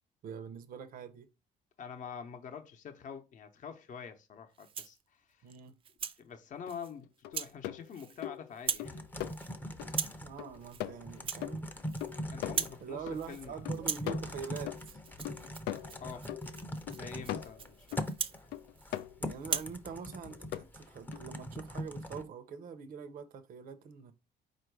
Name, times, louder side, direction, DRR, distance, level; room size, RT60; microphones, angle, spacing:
voice 1, 0.2-1.3 5.4-5.7 10.2-11.6 12.8-15.0 19.2-24.1, right 6 dB, 55° right, 0.7 m, -44 dB
voice 2, 1.8-5.5 6.2-9.0 12.3-13.6 16.0-16.3 16.9-18.0, left 7 dB, 50° left, 0.7 m, -46 dB
Rattle (instrument), 4.5-5.0 5.5-6.2 6.7-6.9 7.3-7.5 7.8-8.3 8.5-8.9 9.2-9.5 9.9-10.2 10.6-10.8 11.1-12.1 12.4-12.8 13.1-13.5 13.7-19.0 19.4-19.7, right 7 dB, 30° right, 0.4 m, -39 dB
sound 1, 6.7-6.8 7.2-9.9 10.4-13.2 13.5-18.1 18.5-19.6 20.1-20.6 21.1-21.2, left 13 dB, 85° left, 0.4 m, -41 dB
Typing, 8.8-22.2, equal, 10° left, 0.6 m, -42 dB
4.4 x 2.5 x 4.6 m
cardioid pair, 110°, 17 cm